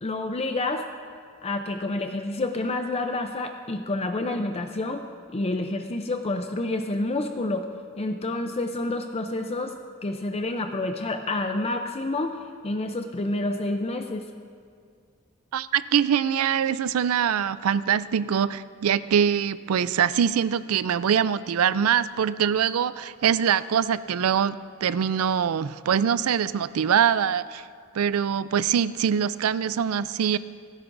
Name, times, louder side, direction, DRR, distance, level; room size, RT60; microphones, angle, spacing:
voice 1, 0.0-0.9 1.4-5.0 5.3-7.7 8.0-9.8 10.0-12.4 12.6-14.3, left 2 dB, 30° left, 5 dB, 0.5 m, -28 dB
voice 2, 15.5-27.6 27.9-30.4, right 8 dB, 85° right, 16 dB, 0.4 m, -23 dB
28.5 x 10.5 x 2.6 m, 2.2 s
head